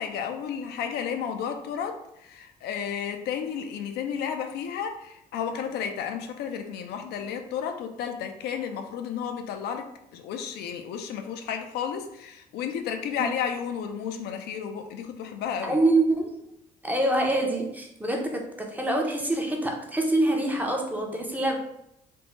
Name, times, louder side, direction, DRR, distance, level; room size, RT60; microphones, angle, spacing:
voice 1, 0.0-15.8, left 7 dB, 75° left, 6 dB, 0.4 m, -32 dB
voice 2, 15.6-16.3 16.8-21.6, right 2 dB, 10° right, 1 dB, 0.5 m, -25 dB
3.4 x 2.0 x 3.0 m, 0.80 s
cardioid pair, 110°, 17 cm